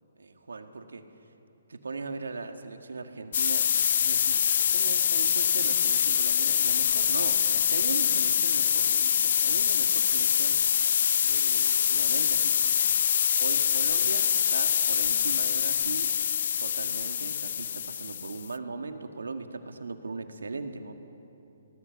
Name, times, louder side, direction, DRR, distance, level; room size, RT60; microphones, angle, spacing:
voice 1, 0.2-1.0 1.7-3.7 4.0-4.4 4.7-11.0 11.2-12.8 13.4-16.1 16.6-20.9, right 3 dB, 90° right, 6 dB, 1.9 m, -39 dB
sound 1, 3.3-18.5, left 8 dB, 55° left, 0.6 m, -25 dB
24.0 x 19.5 x 7.2 m, 2.8 s
hypercardioid pair, 145°, 0 cm